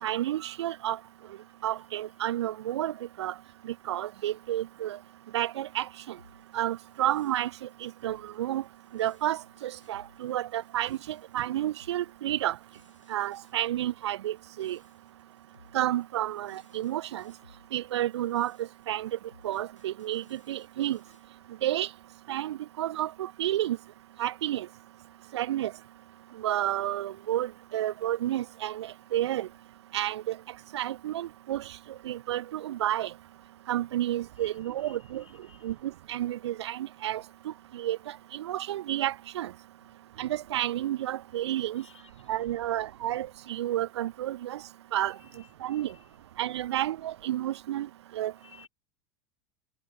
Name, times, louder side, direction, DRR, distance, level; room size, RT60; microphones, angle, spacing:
voice 1, 0.0-1.0 1.6-3.3 3.6-5.0 5.3-6.2 6.5-8.6 8.9-12.6 13.1-14.8 15.7-17.3 17.7-19.2 19.4-21.0 21.6-21.9 22.3-23.8 24.2-24.7 25.3-25.7 26.4-29.5 29.9-30.4 30.7-31.7 32.0-33.1 33.7-35.2 35.6-39.5 40.2-41.8 42.3-44.6 44.9-45.2 45.6-45.9 46.4-48.3, right 13 dB, 65° right, 0.8 m, -31 dB
sound 1, 6.2-21.3, left 1 dB, 90° left, 5.5 m, -61 dB
voice 2, 34.4-35.7 41.8-42.1 45.2-46.1 48.4-48.7, left 7 dB, 75° left, 7.7 m, -57 dB
figure-of-eight pair, 80°, 16 cm